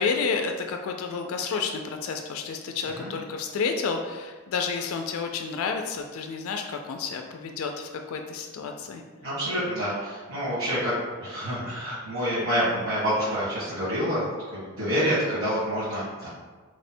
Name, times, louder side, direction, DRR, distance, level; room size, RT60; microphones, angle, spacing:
voice 1, 0.0-9.0, left 5 dB, 80° left, 4 dB, 0.3 m, -30 dB
voice 2, 9.2-10.9 11.2-14.3 14.5-16.4, equal, 65° right, -13 dB, 1.4 m, -27 dB
3.0 x 2.1 x 4.2 m, 1.4 s
head